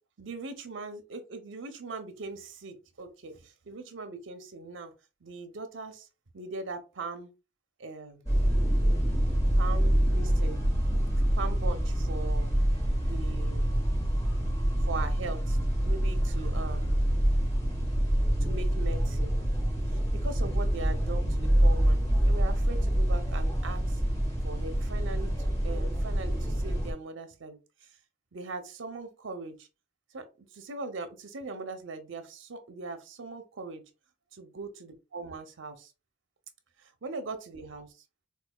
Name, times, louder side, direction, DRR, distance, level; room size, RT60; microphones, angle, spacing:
voice 1, 0.2-4.9 5.2-6.1 6.3-7.3 7.8-8.3 9.6-10.6 11.3-12.5 13.0-13.7 14.8-17.0 18.4-19.4 20.2-24.0 24.4-27.9 28.3-29.7 30.1-33.9 34.3-35.9 36.8-37.9, right 3 dB, 80° right, 0.7 m, -40 dB
sound 1, 8.3-26.9, equal, 15° left, 1.1 m, -26 dB
4.6 x 2.3 x 2.2 m
head